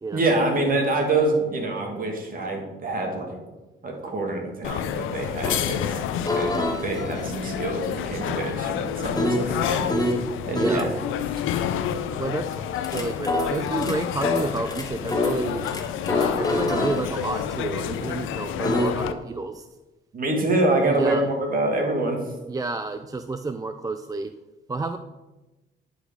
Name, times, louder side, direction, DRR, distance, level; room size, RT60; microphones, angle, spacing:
voice 1, 0.1-3.4 3.8-6.0 6.3-9.9 10.5-10.9 20.1-22.2, right 2 dB, 45° right, 1 dB, 2.3 m, -26 dB
sound 1, 4.6-19.1, left 9 dB, 85° left, 0.6 m, -29 dB
sound 2, 5.4-5.6 6.3-10.2 10.6-10.9 12.5-18.9, left 2 dB, 20° left, 1.3 m, -27 dB
voice 2, 10.5-10.9 12.1-15.7 16.1-19.7 20.8-21.2 22.5-24.3 24.7-25.0, right 3 dB, 20° right, 9 dB, 0.4 m, -30 dB
10.0 x 5.1 x 5.0 m, 1.1 s
cardioid pair, 90°, 20 cm